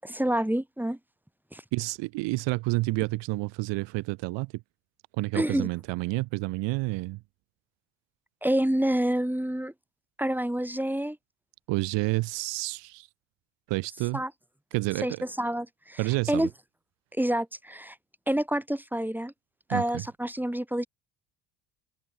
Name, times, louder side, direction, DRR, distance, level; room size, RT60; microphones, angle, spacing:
voice 1, 0.0-1.0 1.5-1.6 5.3-5.7 8.4-9.7 10.2-11.2 14.1-14.3 15.0-16.0 16.3-16.5 17.2-18.0 18.3-19.3 19.7-20.9, right 1 dB, 5° right, 7.9 m, -28 dB
voice 2, 1.7-4.5 5.2-7.2 11.7-13.1 13.7-14.2 14.7-15.2 16.0-16.5 19.7-20.0, right 22 dB, 75° right, 6.6 m, -29 dB
open air
supercardioid pair, 80°, 44 cm